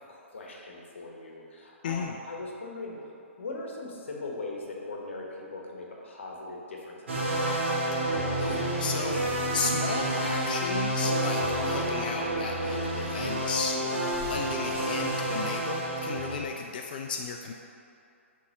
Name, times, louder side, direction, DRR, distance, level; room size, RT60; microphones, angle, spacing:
voice 1, 0.1-3.0 3.4-5.2 5.5-7.5, left 2 dB, 60° left, -1 dB, 1.1 m, -40 dB
voice 2, 1.8-2.2 8.4-9.2 9.5-17.5, left 5 dB, 40° left, 3 dB, 0.3 m, -34 dB
sound 1, 7.1-16.4, right 1 dB, 55° right, 1.3 m, -29 dB
9.4 x 3.5 x 2.8 m, 2.6 s
figure-of-eight pair, 125°, 7 cm